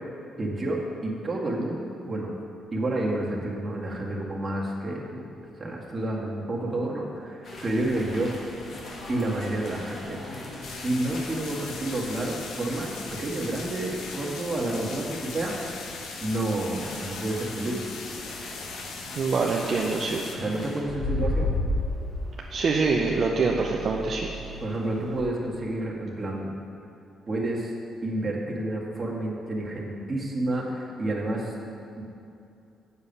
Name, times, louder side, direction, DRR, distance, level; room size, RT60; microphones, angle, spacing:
voice 1, 0.4-2.3 2.7-5.3 5.6-8.3 9.1-10.2 10.6-15.5 16.2-17.8 20.3-21.5 24.6-26.5 27.3-27.7 28.0-31.5 32.0-32.1, right 1 dB, 30° right, -3 dB, 1.8 m, -30 dB
sound 1, 7.4-20.8, left 1 dB, 60° left, 1.8 m, -41 dB
sound 2, 10.6-20.4, left 4 dB, 80° left, 1.0 m, -40 dB
voice 2, 19.2-20.2 22.5-24.3, right 4 dB, 55° right, -1 dB, 0.7 m, -25 dB
sound 3, 19.3-19.7 20.8-25.2, left 2 dB, 45° left, 2.0 m, -31 dB
8.1 x 7.1 x 5.4 m, 2.7 s
cardioid pair, 90°, 0 cm